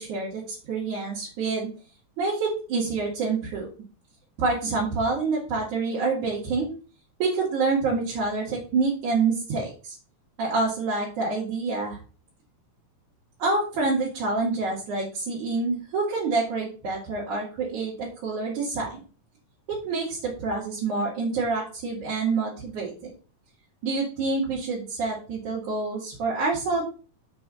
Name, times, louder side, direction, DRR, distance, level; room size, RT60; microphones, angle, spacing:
voice 1, 0.0-1.7 2.2-3.7 4.4-6.7 7.2-10.0 10.4-12.0 13.4-19.0 19.8-23.1 23.8-26.8, right 3 dB, 75° right, -6 dB, 3.5 m, -27 dB
7.0 x 4.6 x 6.8 m, 0.37 s
omnidirectional pair, 3.5 m